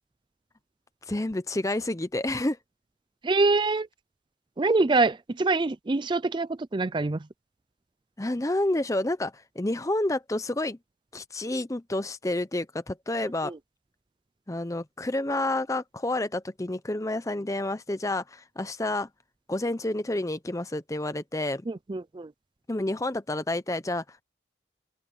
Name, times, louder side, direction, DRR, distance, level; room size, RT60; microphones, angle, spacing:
voice 1, 1.1-2.6 8.2-10.8 11.1-13.5 14.5-19.1 19.5-21.6 22.7-24.2, left 1 dB, 15° left, 0.7 m, -29 dB
voice 2, 3.2-3.9 4.6-7.2 13.4-13.6 21.7-22.3, right 3 dB, 25° right, 0.4 m, -25 dB
head